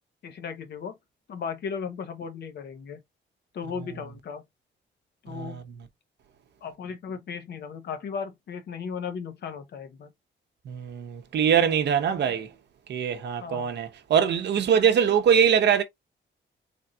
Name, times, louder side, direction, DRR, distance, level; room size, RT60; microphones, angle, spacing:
voice 1, 0.2-0.9 1.3-3.0 3.5-4.4 5.2-5.6 6.6-10.1 13.4-13.7, left 6 dB, 55° left, 0.8 m, -36 dB
voice 2, 5.3-5.6 10.7-12.5 12.9-15.8, right 8 dB, 60° right, 0.7 m, -23 dB
3.9 x 3.4 x 2.3 m
wide cardioid pair, 170°, 20 cm